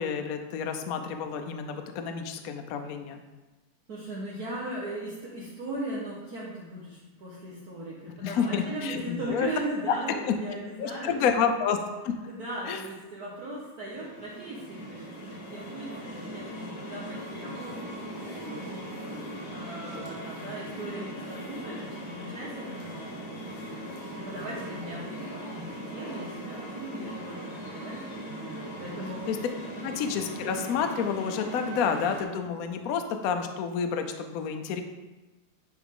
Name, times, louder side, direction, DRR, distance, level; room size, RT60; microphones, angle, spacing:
voice 1, 0.0-3.2 8.2-9.5 9.9-10.0 10.3-10.4 10.8-11.8 12.0-12.1 12.7-12.8 29.3-29.4 29.8-34.8, left 7 dB, 85° left, 6 dB, 0.7 m, -29 dB
voice 2, 3.9-11.3 12.2-19.1 19.5-25.2 25.5-28.2 28.8-29.2 29.7-30.0, right 1 dB, 55° right, -6 dB, 1.4 m, -38 dB
sound 1, 13.9-32.2, right 1 dB, 45° left, 1.4 m, -39 dB
10.5 x 3.6 x 3.7 m, 1.1 s
omnidirectional pair, 2.3 m